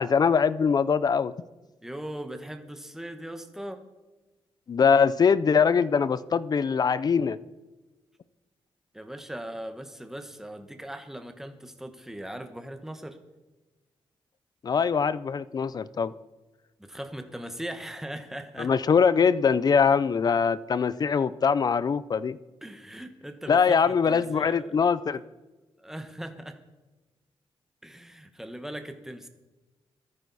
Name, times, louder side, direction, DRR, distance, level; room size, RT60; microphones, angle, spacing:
voice 1, 0.0-1.3 4.7-7.4 14.6-16.1 18.6-22.4 23.5-25.2, left 6 dB, 45° left, 17 dB, 0.5 m, -22 dB
voice 2, 1.8-3.8 8.9-13.2 16.8-18.7 22.6-24.8 25.8-26.6 27.8-29.3, right 1 dB, 5° right, 7 dB, 1.3 m, -39 dB
16.0 x 14.0 x 4.2 m, 1.2 s
wide cardioid pair, 135°, 10 cm